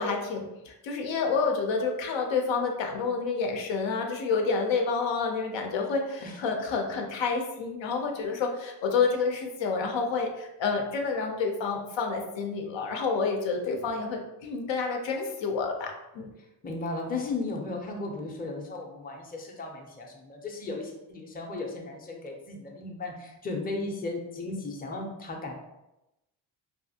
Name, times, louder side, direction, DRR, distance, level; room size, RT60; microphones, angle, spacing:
voice 1, 0.0-16.3, left 4 dB, 75° left, 3 dB, 0.6 m, -29 dB
voice 2, 16.6-25.5, left 3 dB, 20° left, 1 dB, 0.5 m, -35 dB
2.7 x 2.4 x 2.7 m, 0.94 s
cardioid pair, 75°, 45 cm